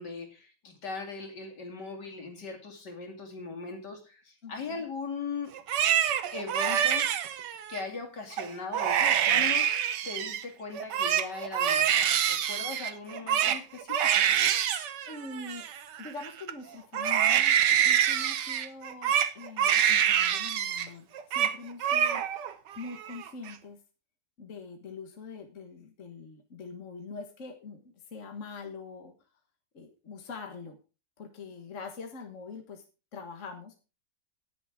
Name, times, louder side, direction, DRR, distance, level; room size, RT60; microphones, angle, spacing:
voice 1, 0.0-5.5 6.3-7.1 7.7-14.3, left 4 dB, 70° left, 3 dB, 3.4 m, -39 dB
voice 2, 4.4-4.8 15.1-15.7 16.0-23.8 24.4-29.1 29.7-30.8 31.2-32.8 33.1-33.7, left 4 dB, 45° left, 4 dB, 1.8 m, -44 dB
Crying sobbing, 5.5-7.8 8.3-8.5 8.7-10.4 10.8-16.5 16.9-20.9 21.1-21.5 21.8-22.5 22.9-23.5, right 9 dB, 80° right, 1.5 m, -26 dB
18.5 x 7.2 x 3.6 m, 0.32 s
omnidirectional pair, 1.9 m